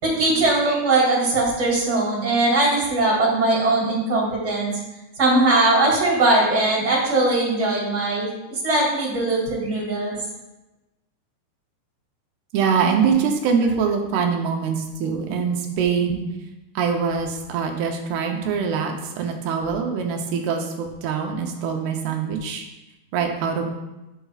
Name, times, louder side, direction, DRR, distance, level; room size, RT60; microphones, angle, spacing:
voice 1, 0.0-4.7 5.2-10.1, right 2 dB, 30° right, -4 dB, 2.3 m, -20 dB
voice 2, 12.5-16.2 16.8-22.7 23.1-23.7, right 6 dB, 75° right, 2 dB, 2.6 m, -23 dB
10.0 x 6.9 x 2.4 m, 1.0 s
omnidirectional pair, 4.9 m